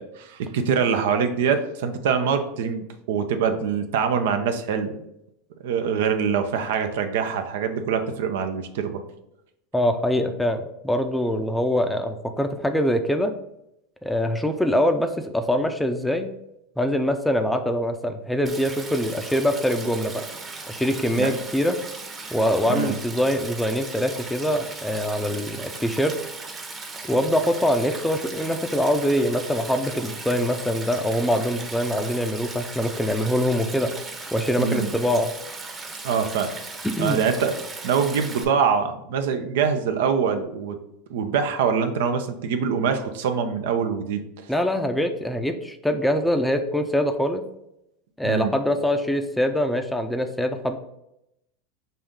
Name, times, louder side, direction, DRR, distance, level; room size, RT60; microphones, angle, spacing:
voice 1, 0.0-4.9 5.6-9.0 21.1-21.3 22.7-23.0 34.6-34.9 36.0-36.5 37.0-37.5 37.8-40.8 41.1-44.2 48.2-48.5, right 6 dB, 75° right, 7 dB, 0.5 m, -24 dB
voice 2, 9.7-13.3 14.0-16.3 16.8-20.2 20.7-21.8 22.3-26.2 27.0-33.9 34.3-35.3 36.8-37.2 44.5-47.4 48.2-50.8, equal, 5° left, 6 dB, 0.5 m, -24 dB
Stream, 18.5-38.5, right 3 dB, 25° right, 0.9 m, -37 dB
5.4 x 2.6 x 3.6 m, 0.82 s
hypercardioid pair, 100°, 0 cm